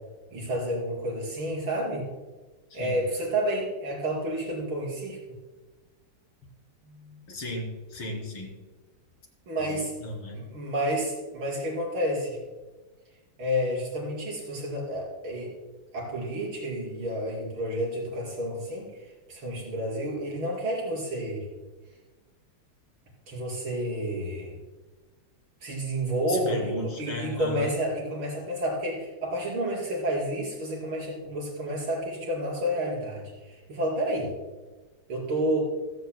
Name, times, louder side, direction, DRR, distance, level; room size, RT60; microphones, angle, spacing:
voice 1, 0.3-2.1 2.7-5.4 6.8-7.2 9.5-9.9 10.3-12.4 13.4-15.5 15.9-18.9 19.3-21.5 23.3-24.5 25.6-34.3 35.1-35.6, equal, 75° right, -5 dB, 5.6 m, -30 dB
voice 2, 2.7-3.0 7.3-8.5 9.6-10.4 26.3-27.7, equal, 85° left, -2 dB, 4.5 m, -35 dB
25.5 x 9.2 x 2.2 m, 1.2 s
omnidirectional pair, 2.3 m